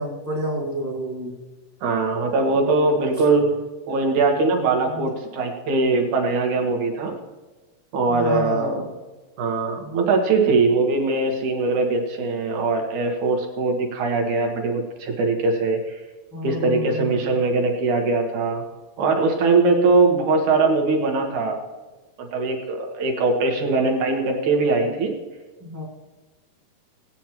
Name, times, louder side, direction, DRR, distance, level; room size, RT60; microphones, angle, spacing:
voice 1, 0.0-1.4 4.9-5.1 8.1-8.9 16.3-17.3 25.6-25.8, equal, 15° right, -5 dB, 0.5 m, -29 dB
voice 2, 1.8-3.5 3.9-7.1 7.9-8.9 9.4-16.0 16.4-18.7 19.0-21.6 22.2-25.2, right 3 dB, 60° right, 2 dB, 2.5 m, -21 dB
19.0 x 9.2 x 3.0 m, 1.2 s
omnidirectional pair, 4.5 m